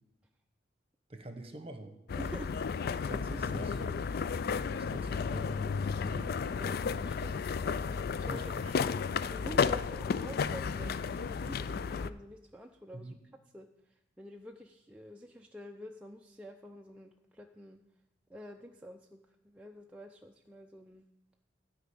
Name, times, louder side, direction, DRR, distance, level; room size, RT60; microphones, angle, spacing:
voice 1, 1.1-2.0 3.1-4.0 4.8-6.4 8.2-8.8 12.9-13.2, right 1 dB, 30° right, 7 dB, 1.2 m, -45 dB
sound 1, 2.1-12.1, left 5 dB, 55° left, 0.3 m, -33 dB
voice 2, 2.2-2.5 6.5-7.5 8.0-8.9 9.2-13.1 13.5-13.7 14.2-17.8 18.3-19.2 19.4-21.1, equal, 5° right, 1 dB, 0.5 m, -48 dB
13.0 x 5.0 x 8.4 m, 0.88 s
head